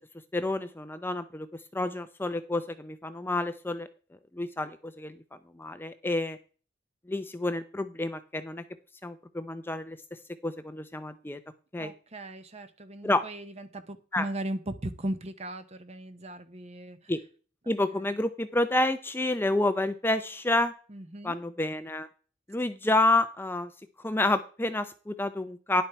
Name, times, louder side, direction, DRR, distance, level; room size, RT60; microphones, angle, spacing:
voice 1, 0.3-1.5 1.7-3.9 4.3-5.2 5.6-6.4 7.1-8.6 9.0-10.0 10.4-11.4 11.7-11.9 13.0-13.2 14.1-14.3 17.1-17.2 17.7-20.7 21.2-22.1 22.5-23.7 24.0-25.8, left 2 dB, 10° left, 10 dB, 0.5 m, -29 dB
voice 2, 11.8-17.1 17.9-18.2 20.9-21.4, right 1 dB, 35° right, 11 dB, 0.9 m, -38 dB
10.5 x 7.2 x 4.5 m, 0.37 s
head